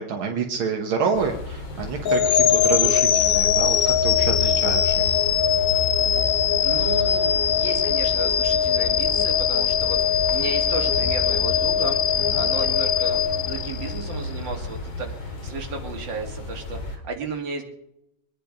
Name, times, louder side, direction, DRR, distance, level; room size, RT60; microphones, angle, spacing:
voice 1, 0.0-5.2 12.3-12.4, right 5 dB, 85° right, 2 dB, 2.2 m, -28 dB
sound 1, 1.1-17.0, left 2 dB, 90° left, 3.2 m, -32 dB
sound 2, 2.0-14.2, left 8 dB, 60° left, 1.0 m, -21 dB
voice 2, 6.6-17.6, right 3 dB, 65° right, 2 dB, 3.0 m, -34 dB
24.0 x 10.5 x 5.2 m, 0.82 s
omnidirectional pair, 2.2 m